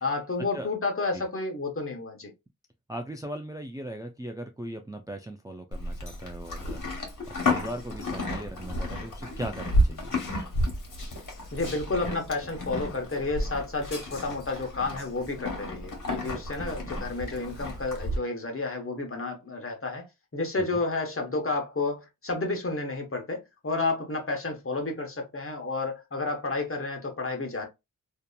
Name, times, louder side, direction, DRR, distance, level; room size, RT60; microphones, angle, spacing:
voice 1, 0.0-2.3 7.5-7.6 11.5-20.1 20.3-27.6, left 3 dB, 40° left, 0.9 m, -31 dB
voice 2, 2.9-7.1 7.4-10.1 16.6-16.7 20.5-20.8, right 1 dB, 10° right, 0.4 m, -38 dB
Livestock farm animals working animals, 5.7-18.2, left 1 dB, 60° left, 1.0 m, -32 dB
2.7 x 2.4 x 2.2 m
cardioid pair, 45°, 35 cm